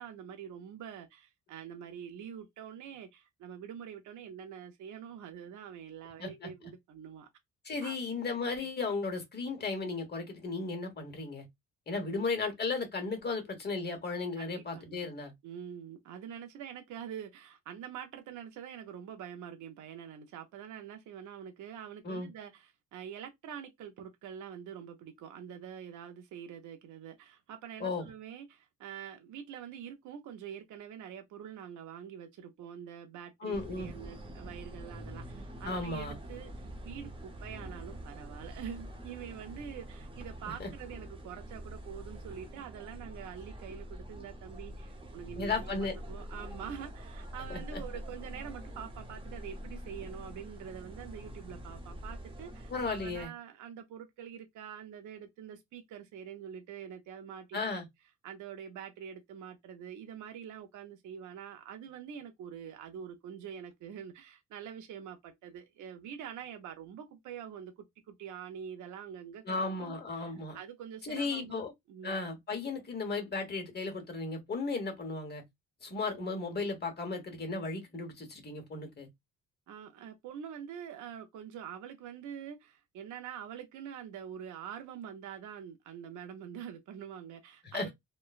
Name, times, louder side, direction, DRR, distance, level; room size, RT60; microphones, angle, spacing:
voice 1, 0.0-7.3 7.8-7.9 12.0-12.2 14.4-15.1 15.4-57.8 58.2-67.7 68.1-72.2 79.7-87.9, right 8 dB, 75° right, 0.7 m, -45 dB
voice 2, 7.6-11.4 11.9-15.3 22.0-22.3 27.8-28.0 33.4-33.9 35.6-36.2 40.6-40.7 45.4-45.9 47.5-47.8 52.7-53.3 57.5-57.8 69.4-70.6 71.0-71.7 72.0-75.4 75.8-79.1 87.6-87.9, left 3 dB, 35° left, 1.2 m, -35 dB
sound 1, 33.5-53.3, equal, 15° right, 0.7 m, -45 dB
2.9 x 2.2 x 2.4 m
cardioid pair, 90°, 30 cm